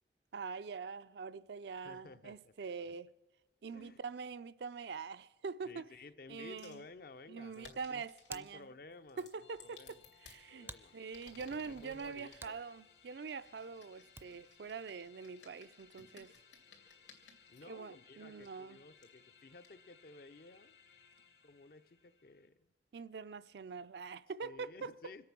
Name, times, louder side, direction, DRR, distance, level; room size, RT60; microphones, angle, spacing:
voice 1, 0.3-3.1 3.6-5.9 6.3-6.8 7.3-8.7 9.2-16.3 17.7-18.8 22.9-24.9, right 5 dB, 70° right, 0.4 m, -44 dB
voice 2, 1.7-2.5 3.7-4.0 5.6-8.0 8.3-10.0 10.5-11.0 11.7-12.6 17.5-20.8 21.4-22.7 24.4-25.3, left 3 dB, 55° left, 0.5 m, -55 dB
sound 1, 6.6-6.8 7.5-8.4 9.1-10.4 11.0-12.4 13.2-17.6 18.4-18.5 19.0-19.1 19.6-19.7, left 5 dB, 85° left, 2.7 m, -60 dB
Hands, 7.7-14.6, right 3 dB, 15° right, 0.4 m, -57 dB
sound 2, 9.4-22.5, left 7 dB, 70° left, 1.5 m, -64 dB
25.5 x 8.6 x 6.0 m
head